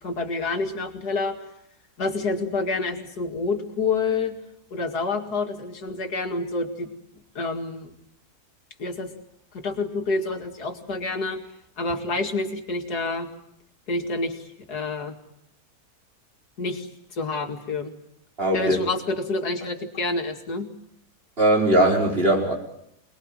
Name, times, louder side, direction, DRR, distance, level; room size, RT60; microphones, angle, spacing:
voice 1, 0.0-1.4 2.0-4.4 4.7-6.9 7.3-7.9 8.8-9.1 9.5-11.4 11.8-13.3 13.9-15.2 16.6-17.9 18.5-20.7, left 3 dB, 75° left, 5 dB, 2.8 m, -28 dB
voice 2, 18.4-18.8 21.4-22.5, right 1 dB, 35° right, 1 dB, 5.4 m, -20 dB
26.5 x 20.5 x 9.0 m, 0.76 s
omnidirectional pair, 1.7 m